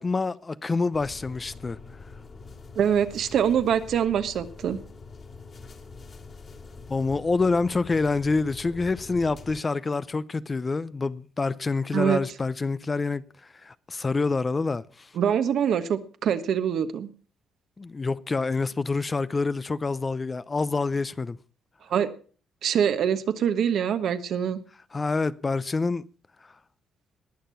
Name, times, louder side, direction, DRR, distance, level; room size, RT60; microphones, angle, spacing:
voice 1, 0.0-1.8 6.9-13.3 13.6-15.1 17.8-21.4 24.9-26.0, left 3 dB, 25° left, 0.6 m, -27 dB
sound 1, 0.9-9.6, left 4 dB, 45° left, 2.6 m, -45 dB
voice 2, 2.7-4.8 11.9-12.2 15.2-17.1 21.9-22.1 22.6-24.6, right 8 dB, 70° right, 1.3 m, -24 dB
20.0 x 6.8 x 5.7 m
cardioid pair, 90°, 0 cm